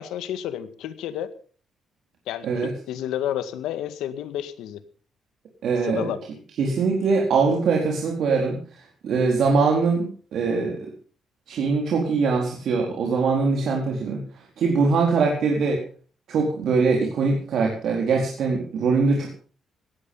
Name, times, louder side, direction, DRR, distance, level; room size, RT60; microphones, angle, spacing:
voice 1, 0.0-1.3 2.3-4.8 5.8-6.2 15.2-15.3, left 11 dB, 90° left, 11 dB, 1.9 m, -31 dB
voice 2, 5.6-6.1 6.6-10.9 11.5-15.8 16.3-19.3, right 4 dB, 70° right, 1 dB, 4.3 m, -22 dB
18.0 x 13.5 x 5.5 m, 0.42 s
cardioid pair, 90°, 0 cm